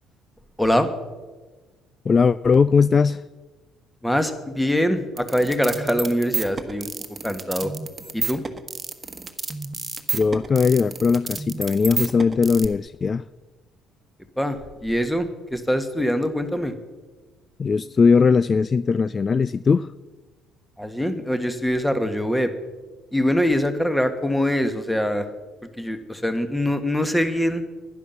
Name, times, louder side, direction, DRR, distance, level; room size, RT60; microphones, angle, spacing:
voice 1, 0.6-0.9 4.0-6.9 7.2-7.7 8.1-8.4 14.4-16.7 20.8-22.5 23.1-25.3 25.8-27.6, equal, 5° left, 9 dB, 1.7 m, -23 dB
voice 2, 2.1-3.2 10.1-13.2 17.6-19.9, left 5 dB, 35° left, 17 dB, 0.3 m, -19 dB
sound 1, 5.2-12.7, right 4 dB, 25° right, 1.4 m, -30 dB
10.5 x 10.5 x 6.9 m, 1.2 s
hypercardioid pair, 55°, 0 cm